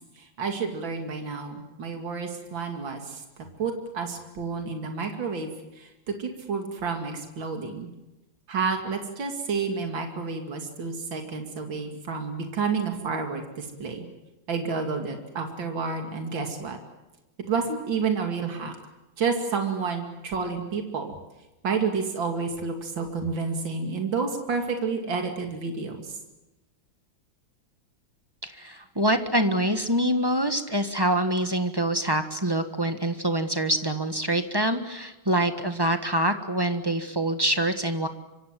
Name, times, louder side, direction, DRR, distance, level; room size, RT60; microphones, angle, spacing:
voice 1, 0.4-3.2 3.6-5.5 5.8-7.9 8.5-14.1 14.5-16.8 17.5-18.7 19.2-21.1 21.6-26.1, right 5 dB, 65° right, 4 dB, 3.3 m, -30 dB
voice 2, 28.4-38.1, right 1 dB, 15° right, 7 dB, 1.3 m, -25 dB
25.0 x 25.0 x 7.6 m, 1.0 s
omnidirectional pair, 2.2 m